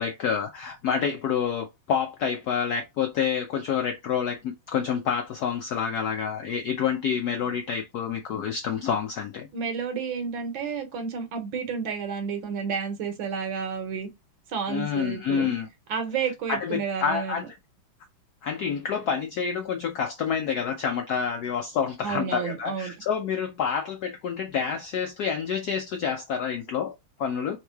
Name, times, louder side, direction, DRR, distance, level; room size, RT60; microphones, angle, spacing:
voice 1, 0.0-9.5 14.7-15.7 16.5-17.4 18.4-27.6, left 7 dB, 75° left, 0.9 m, -28 dB
voice 2, 9.5-14.1 14.5-15.5 15.9-17.4 22.0-22.9, right 6 dB, 70° right, 1.6 m, -31 dB
3.7 x 3.1 x 3.4 m
omnidirectional pair, 2.3 m